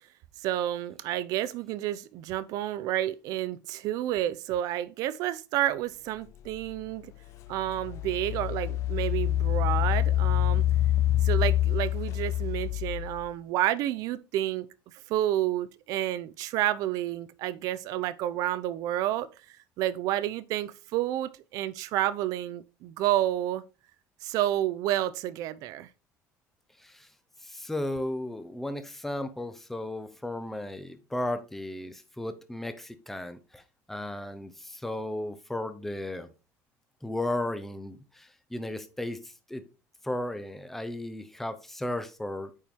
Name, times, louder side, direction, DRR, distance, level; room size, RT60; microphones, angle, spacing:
voice 1, 0.4-7.1 7.5-10.6 11.2-14.7 15.1-19.3 19.8-23.6 24.2-25.9, right 13 dB, 60° right, 0.6 m, -30 dB
Engine, 6.6-6.7 7.3-13.3, left 13 dB, 45° left, 0.3 m, -26 dB
voice 2, 27.4-33.6 33.9-36.3 37.0-39.6 40.0-42.5, left 1 dB, 5° left, 0.7 m, -35 dB
8.9 x 4.6 x 3.6 m
cardioid pair, 160°, 7 cm